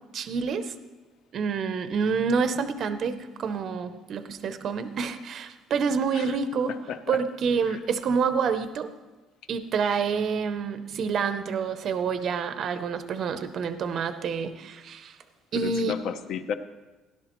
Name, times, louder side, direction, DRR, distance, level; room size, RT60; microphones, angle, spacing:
voice 1, 0.1-0.7 1.3-6.7 7.1-8.9 9.5-15.2 15.5-16.0, right 5 dB, 35° right, 10 dB, 0.6 m, -28 dB
voice 2, 6.9-7.2 15.5-16.5, left 7 dB, 50° left, 11 dB, 0.7 m, -32 dB
17.0 x 11.5 x 3.0 m, 1.2 s
cardioid pair, 180°, 0 cm